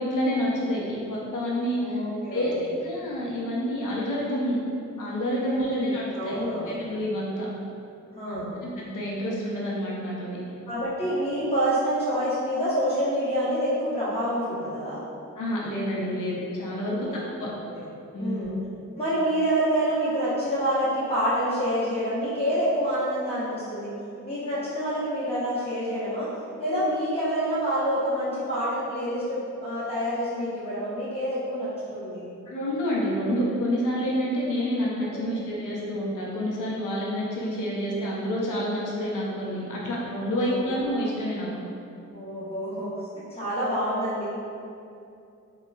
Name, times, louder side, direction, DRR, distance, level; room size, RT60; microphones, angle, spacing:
voice 1, 0.0-2.0 2.3-2.5 2.8-4.6 5.0-6.4 6.6-7.5 8.3-10.4 15.4-17.5 18.1-18.5 32.5-41.5, equal, 90° left, -5 dB, 0.6 m, -28 dB
voice 2, 1.8-2.7 5.4-6.8 8.1-8.6 10.6-15.0 16.8-17.9 18.2-18.5 19.0-23.9 24.2-26.3 26.6-32.3 35.1-35.4 40.3-40.8 42.1-44.3, equal, 20° left, -10 dB, 0.9 m, -27 dB
3.7 x 2.2 x 2.2 m, 2.6 s
wide cardioid pair, 75°, 30 cm